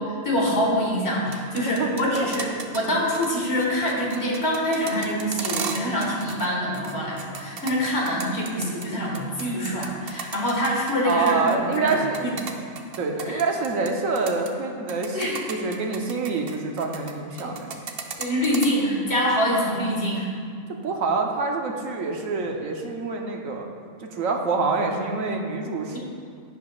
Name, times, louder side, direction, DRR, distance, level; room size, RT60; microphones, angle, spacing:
voice 1, 0.0-12.6 13.3-13.4 15.1-15.4 17.3-17.5 18.2-20.3, equal, 50° left, -3 dB, 1.8 m, -25 dB
sound 1, 1.2-2.9 3.1-3.3 3.6-6.5 6.7-8.9 9.1-13.9 14.2-14.5 14.9-17.1 17.4-18.7, right 6 dB, 55° right, 0.8 m, -34 dB
voice 2, 1.8-2.3 11.0-12.3 13.0-17.8 20.7-23.7 24.0-26.0, right 4 dB, 80° right, 2 dB, 1.2 m, -26 dB
10.5 x 9.5 x 2.4 m, 2.2 s
omnidirectional pair, 1.4 m